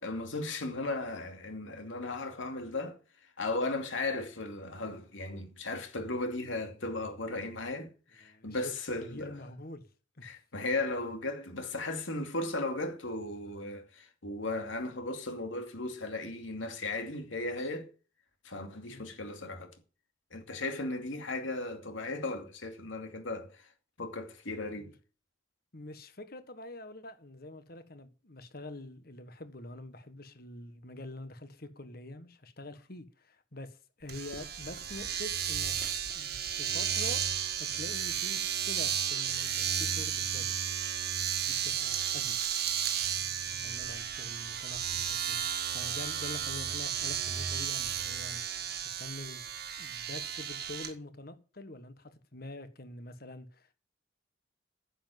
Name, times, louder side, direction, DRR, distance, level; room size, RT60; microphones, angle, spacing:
voice 1, 0.0-3.0 3.4-9.4 10.2-17.9 18.4-19.7 20.3-23.7 24.0-24.9, left 2 dB, 80° left, 2.6 m, -36 dB
voice 2, 8.2-8.7 9.1-9.8 10.2-10.3 18.9-19.1 24.8-24.9 25.7-35.7 36.1-37.2 37.5-40.5 41.4-42.4 43.5-45.4 45.7-49.4 49.8-53.7, left 2 dB, 50° left, 1.5 m, -46 dB
Domestic sounds home sounds, 34.1-50.9, right 9 dB, 55° right, 1.6 m, -33 dB
10.0 x 7.9 x 7.8 m
head